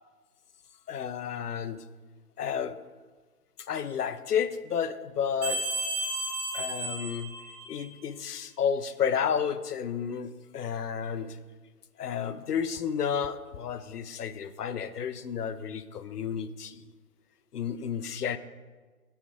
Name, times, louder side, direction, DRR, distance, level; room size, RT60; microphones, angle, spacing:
voice 1, 0.9-1.8 2.4-2.8 3.6-5.7 6.5-7.3 7.7-11.4 12.0-16.8 17.5-18.4, left 7 dB, 80° left, 12 dB, 0.6 m, -31 dB
sound 1, 5.4-8.0, right 2 dB, 10° right, 2.1 m, -33 dB
8.5 x 3.3 x 4.6 m, 1.4 s
figure-of-eight pair, 155°, 46 cm